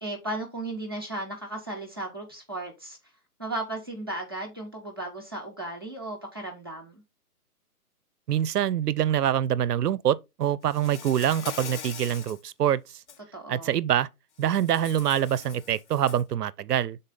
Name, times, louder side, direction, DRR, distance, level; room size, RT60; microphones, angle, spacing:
voice 1, 0.0-3.0 3.4-7.0 13.3-13.8, right 1 dB, 15° right, 0.6 m, -35 dB
voice 2, 8.3-13.0 13.5-14.1 14.4-17.0, right 10 dB, 80° right, 0.6 m, -25 dB
Insect, 10.7-12.4 12.9-13.2 14.4-16.3, left 7 dB, 50° left, 0.9 m, -42 dB
6.6 x 4.0 x 3.8 m
hypercardioid pair, 165°, 46 cm